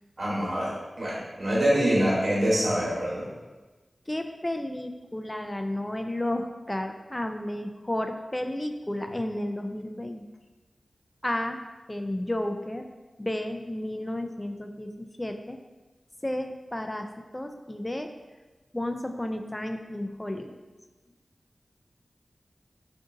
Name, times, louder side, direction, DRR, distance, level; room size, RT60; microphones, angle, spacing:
voice 1, 0.2-0.7 1.0-3.3, equal, 60° right, -7 dB, 1.2 m, -25 dB
voice 2, 4.1-10.2 11.2-11.6 11.9-12.9 13.2-15.6 16.2-18.1 18.7-20.6, left 1 dB, 20° left, 6 dB, 0.3 m, -32 dB
3.7 x 2.6 x 3.7 m, 1.2 s
wide cardioid pair, 70°, 0 cm